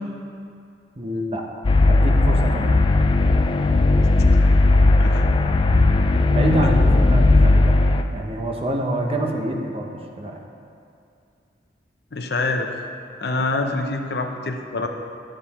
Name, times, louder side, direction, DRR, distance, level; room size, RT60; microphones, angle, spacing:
voice 1, 1.0-2.8 6.3-7.8 8.1-10.4, right 1 dB, 30° right, 1 dB, 0.8 m, -26 dB
sound 1, 1.6-8.0, left 2 dB, 25° left, 0.3 m, -16 dB
voice 2, 12.1-12.7 13.2-14.9, left 3 dB, 60° left, 4 dB, 0.7 m, -26 dB
11.5 x 7.7 x 4.2 m, 2.5 s
head